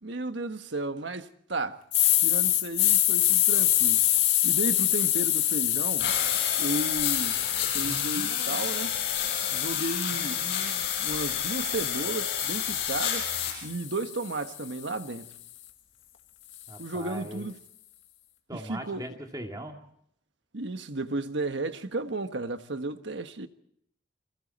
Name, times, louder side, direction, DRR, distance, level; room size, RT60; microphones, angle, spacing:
voice 1, 0.0-1.8 2.2-4.0 4.4-6.1 6.6-7.4 7.7-8.9 9.5-10.4 11.0-13.3 13.6-15.3 16.8-17.5 18.5-19.0 20.5-23.5, right 2 dB, 70° right, 1.4 m, -33 dB
sound 1, 1.9-10.0 10.5-14.7, left 13 dB, 85° left, 2.0 m, -27 dB
sound 2, 6.0-13.5, left 9 dB, 60° left, 6.6 m, -29 dB
voice 2, 16.7-17.4 18.5-19.8, right 1 dB, 20° right, 2.5 m, -39 dB
29.5 x 22.5 x 4.3 m
head